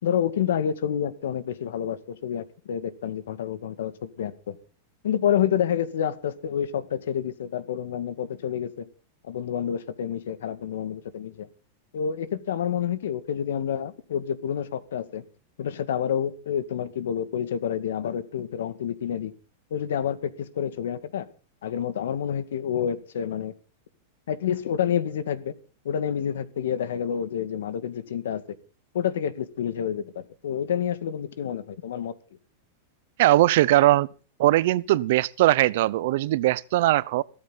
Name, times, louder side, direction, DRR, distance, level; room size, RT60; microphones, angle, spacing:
voice 1, 0.0-4.6 5.0-8.9 9.2-11.5 11.9-15.2 15.6-19.3 19.7-21.3 21.6-23.5 24.3-25.5 25.8-28.6 28.9-32.1, left 9 dB, 85° left, 2.0 m, -28 dB
voice 2, 33.2-34.1 34.4-37.2, right 16 dB, 60° right, 0.8 m, -20 dB
16.5 x 14.0 x 4.0 m
supercardioid pair, 150°, 0 cm